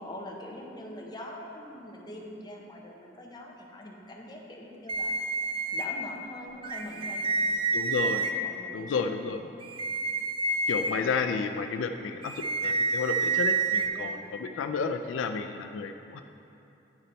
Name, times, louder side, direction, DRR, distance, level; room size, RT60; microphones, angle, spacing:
voice 1, 0.0-5.1 5.7-7.7 7.9-9.5 10.8-11.1 13.9-14.2, left 1 dB, 20° left, -2 dB, 0.7 m, -43 dB
sound 1, 4.9-5.8 6.6-8.3 9.6-10.9 12.2-13.9, right 4 dB, 30° right, 0.4 m, -28 dB
voice 2, 7.7-8.2 8.7-9.4 10.7-16.2, left 5 dB, 80° left, 6 dB, 0.3 m, -31 dB
10.5 x 4.0 x 4.2 m, 2.8 s
head